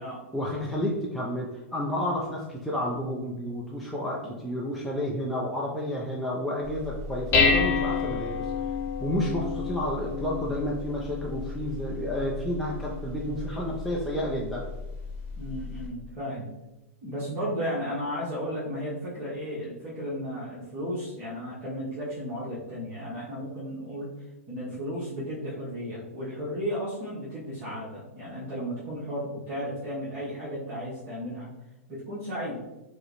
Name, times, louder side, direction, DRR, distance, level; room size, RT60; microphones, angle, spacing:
voice 1, 0.3-8.5 9.0-14.6, equal, ahead, -5 dB, 0.5 m, -30 dB
Dishes pots and pans, 6.6-15.9, left 5 dB, 35° left, 0.9 m, -30 dB
voice 2, 15.4-16.5 17.0-24.1 24.5-31.5 31.9-32.6, equal, 35° right, -9 dB, 1.1 m, -34 dB
4.6 x 2.1 x 3.0 m, 1.0 s
hypercardioid pair, 110°, 8 cm